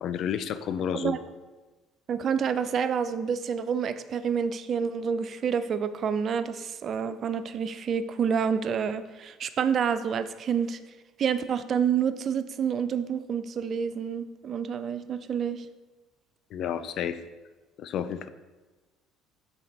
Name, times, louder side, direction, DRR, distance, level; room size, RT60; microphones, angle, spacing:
voice 1, 0.0-1.2 16.5-17.2 17.8-18.3, left 8 dB, 60° left, 12 dB, 0.4 m, -31 dB
voice 2, 2.1-10.8 11.2-15.7, right 7 dB, 50° right, 12 dB, 0.4 m, -28 dB
5.7 x 4.0 x 4.1 m, 1.2 s
hypercardioid pair, 70°, 0 cm